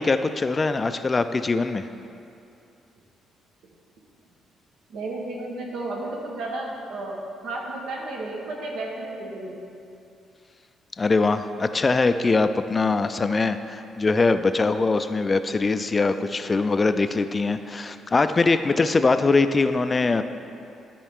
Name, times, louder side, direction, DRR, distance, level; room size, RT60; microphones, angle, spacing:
voice 1, 0.0-1.9 11.0-20.2, left 3 dB, 30° left, 10 dB, 0.4 m, -22 dB
voice 2, 4.9-9.6, right 2 dB, 80° right, -1 dB, 1.2 m, -33 dB
12.5 x 4.6 x 3.7 m, 2.6 s
cardioid pair, 90°, 0 cm